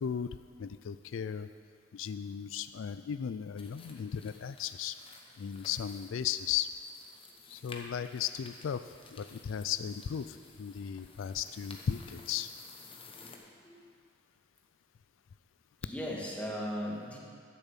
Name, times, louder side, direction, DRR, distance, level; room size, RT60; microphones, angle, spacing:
voice 1, 0.6-1.5 1.9-5.0 5.4-6.7 7.5-12.5, left 8 dB, 80° left, 12 dB, 0.4 m, -36 dB
sound 1, 3.6-13.4, left 4 dB, 30° left, 1.0 m, -53 dB
voice 2, 13.1-13.8 15.8-17.2, equal, 5° left, -3 dB, 1.6 m, -38 dB
12.0 x 7.0 x 7.3 m, 2.1 s
head